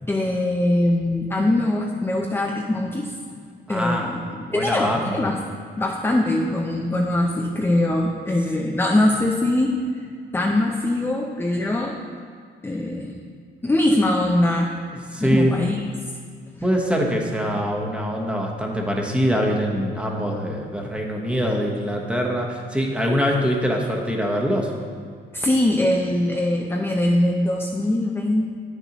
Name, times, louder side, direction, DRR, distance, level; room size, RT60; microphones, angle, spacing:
voice 1, 0.0-3.1 3.7-5.4 5.8-9.8 10.3-12.0 12.6-13.1 13.6-14.7 15.2-15.9 16.6-16.7 17.5-17.7 25.3-28.5, left 1 dB, 10° left, 0 dB, 0.5 m, -22 dB
voice 2, 3.7-4.1 4.5-5.1 15.1-15.5 16.6-24.7, equal, 5° right, 0 dB, 1.1 m, -23 dB
8.8 x 6.6 x 3.0 m, 2.1 s
cardioid pair, 90°, 20 cm